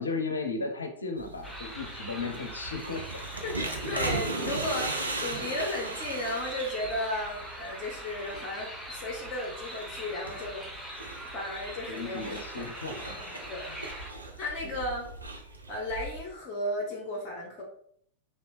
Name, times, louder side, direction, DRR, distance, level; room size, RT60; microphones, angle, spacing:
voice 1, 0.0-3.2 11.9-13.0 13.7-13.8 14.6-14.8, left 3 dB, 75° left, 5 dB, 0.5 m, -35 dB
sound 1, 1.2-16.2, right 2 dB, 80° right, 0.5 m, -38 dB
sound 2, 1.4-14.1, equal, ahead, 0.7 m, -42 dB
voice 2, 3.4-10.7 11.3-12.2 13.0-13.7 14.4-15.1 15.7-17.6, left 1 dB, 30° left, -2 dB, 0.9 m, -34 dB
3.1 x 2.8 x 3.2 m, 0.65 s
figure-of-eight pair, 90°, 0 cm